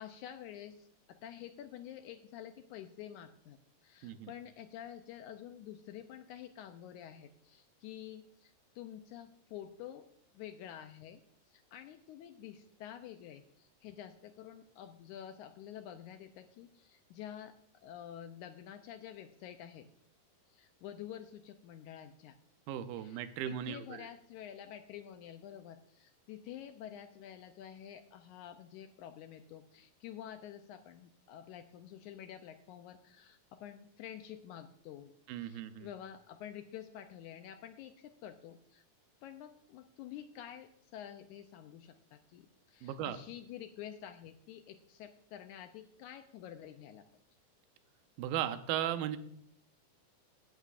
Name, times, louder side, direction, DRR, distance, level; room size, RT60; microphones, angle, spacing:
voice 1, 0.0-3.6 3.8-10.1 10.3-11.2 11.5-19.9 20.5-22.4 23.0-23.2 23.5-35.1 35.4-38.8 39.2-47.0, left 10 dB, 85° left, 7 dB, 1.8 m, -49 dB
voice 2, 22.7-24.1 35.3-35.9 42.8-43.2 48.2-49.2, right 11 dB, 85° right, 10 dB, 2.5 m, -36 dB
16.5 x 9.3 x 2.5 m, 0.67 s
omnidirectional pair, 4.1 m